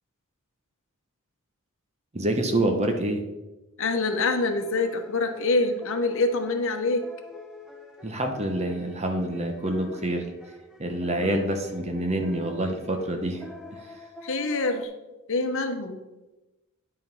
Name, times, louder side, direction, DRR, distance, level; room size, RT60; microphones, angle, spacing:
voice 1, 2.1-3.2 8.0-10.3 10.8-13.4 13.7-13.8, right 1 dB, 30° right, 4 dB, 1.1 m, -27 dB
voice 2, 3.8-7.1 11.1-11.5 14.2-14.9 15.3-16.0, left 3 dB, 65° left, 6 dB, 1.0 m, -26 dB
sound 1, 4.1-14.8, left 3 dB, 5° right, 1.0 m, -46 dB
9.7 x 5.2 x 5.5 m, 1.1 s
head